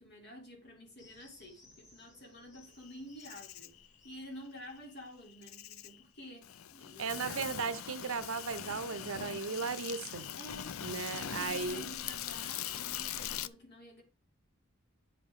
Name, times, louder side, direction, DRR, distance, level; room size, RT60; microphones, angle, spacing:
voice 1, 0.0-7.6 10.4-10.8 11.1-14.0, equal, 50° left, 2.9 m, -50 dB
sound 1, 1.0-5.8, left 2 dB, 35° left, 2.4 m, -63 dB
Insect, 2.8-13.5, left 10 dB, 80° left, 0.4 m, -42 dB
voice 2, 7.0-10.3 10.8-11.9, right 5 dB, 70° right, 0.6 m, -36 dB
8.8 x 6.5 x 3.6 m
head